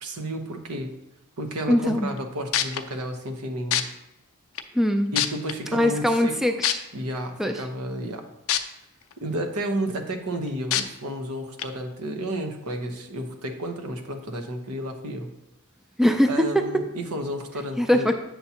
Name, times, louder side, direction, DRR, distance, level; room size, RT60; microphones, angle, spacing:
voice 1, 0.0-0.9 1.4-3.8 5.1-6.3 6.9-8.2 9.2-15.3 16.3-18.1, right 1 dB, 80° right, 5 dB, 1.0 m, -32 dB
voice 2, 1.7-2.1 4.7-5.1 5.7-6.8 7.4-7.6 16.0-16.6 17.8-18.1, left 1 dB, ahead, 6 dB, 0.3 m, -21 dB
sound 1, 2.2-2.3 2.5-2.8 3.7-3.8 4.6-4.7 5.1-5.5 6.6-6.7 8.5-8.6 9.1-9.2 10.7-10.8 11.6-11.7, left 10 dB, 65° left, 0.5 m, -22 dB
7.6 x 7.0 x 2.9 m, 0.87 s
head